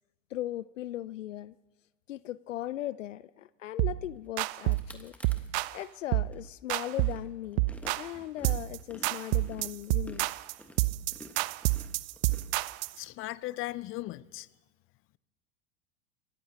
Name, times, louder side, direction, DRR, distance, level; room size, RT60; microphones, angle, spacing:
voice 1, 0.3-1.6 2.1-5.1 5.7-10.3, left 13 dB, 80° left, 0.5 m, -38 dB
sound 1, 3.8-4.0 4.4-4.9 5.2-5.8 6.1-6.4 6.7-7.2 7.6-8.1 8.4-8.8 9.0-13.0, right 21 dB, 50° right, 0.4 m, -29 dB
sound 2, 4.3-4.4 4.6-5.9 6.3-13.1, left 1 dB, 5° left, 1.5 m, -52 dB
voice 2, 13.0-14.5, left 17 dB, 35° left, 0.6 m, -37 dB
26.5 x 14.0 x 2.9 m
hypercardioid pair, 85°, 37 cm